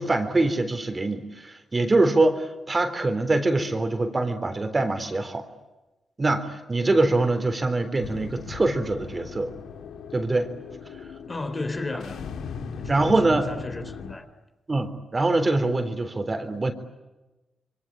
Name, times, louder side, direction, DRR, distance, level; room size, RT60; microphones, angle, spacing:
voice 1, 0.0-5.4 6.2-9.5 10.1-10.5 12.9-13.5 14.7-16.7, right 2 dB, 30° right, 3.8 m, -24 dB
sound 1, 8.0-14.1, left 6 dB, 85° left, 2.4 m, -39 dB
voice 2, 11.3-12.2 12.7-14.3, left 2 dB, 30° left, 3.6 m, -34 dB
27.5 x 23.5 x 8.8 m
cardioid pair, 70°, 0 cm